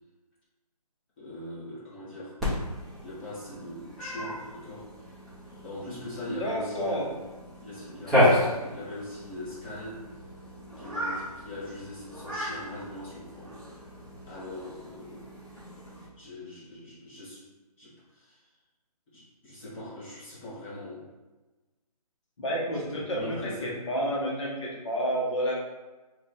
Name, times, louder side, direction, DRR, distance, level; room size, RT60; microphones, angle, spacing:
voice 1, 1.2-2.4 3.0-4.9 5.6-7.1 7.6-10.0 10.8-13.5 14.2-15.3 16.2-17.4 17.8-18.4 19.1-21.1 22.7-23.8, left 1 dB, 15° left, -10 dB, 1.0 m, -41 dB
Cat, 2.4-16.1, left 1 dB, ahead, 0.6 m, -32 dB
voice 2, 6.3-7.1 22.4-25.5, equal, 50° left, -3 dB, 1.0 m, -30 dB
3.0 x 2.3 x 4.0 m, 1.2 s
hypercardioid pair, 160°, 20 cm